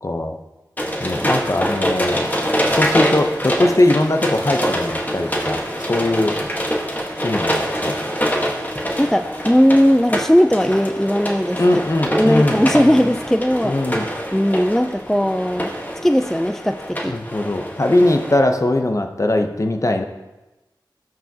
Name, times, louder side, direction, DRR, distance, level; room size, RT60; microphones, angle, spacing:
voice 1, 0.0-0.4 1.0-6.4 7.2-7.9 11.6-13.0 13.6-14.1 17.1-20.0, left 1 dB, 40° left, 5 dB, 0.7 m, -20 dB
sound 1, 0.8-18.4, equal, 20° left, 1.3 m, -24 dB
voice 2, 8.6-11.6 12.2-13.8 14.3-15.7 16.0-17.2, equal, 5° left, 8 dB, 0.3 m, -17 dB
13.5 x 4.7 x 2.8 m, 1.1 s
wide cardioid pair, 40°, 8 cm